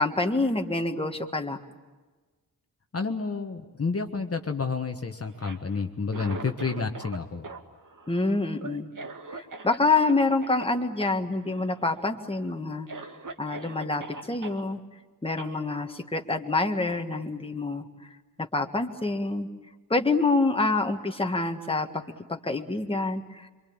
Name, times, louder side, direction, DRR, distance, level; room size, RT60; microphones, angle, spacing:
voice 1, 0.0-1.6 8.1-8.9 9.3-12.9 13.4-14.8 15.2-17.8 18.4-19.5 19.9-22.0 22.3-23.5, left 3 dB, 15° left, 4 dB, 1.7 m, -26 dB
voice 2, 2.9-7.5, left 4 dB, 40° left, 4 dB, 1.4 m, -30 dB
Cough, 5.3-7.2 7.4-10.1 10.4-10.6 11.0-11.2 11.5-12.0 12.4-12.5 12.9-14.6 15.4-15.5, right 3 dB, 55° right, 2.4 m, -41 dB
27.5 x 24.5 x 8.8 m, 1.3 s
wide cardioid pair, 135°, 37 cm